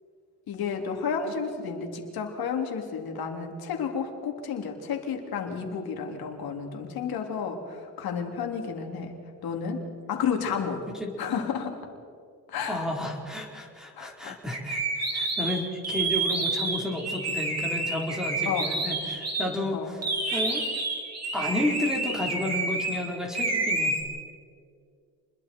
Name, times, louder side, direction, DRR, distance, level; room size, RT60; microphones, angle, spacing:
voice 1, 0.5-9.2 9.4-10.9 11.2-11.8 12.5-12.8 13.9-14.4 18.4-18.7 19.7-19.9, left 6 dB, 70° left, 3 dB, 3.5 m, -31 dB
voice 2, 12.6-20.0 20.3-20.7 21.3-24.0, left 1 dB, ahead, -3 dB, 4.5 m, -32 dB
sound 1, 14.5-19.5 20.0-23.0 23.3-24.0, right 2 dB, 40° right, 5.6 m, -29 dB
29.5 x 22.0 x 4.7 m, 2.2 s
cardioid pair, 95°, 38 cm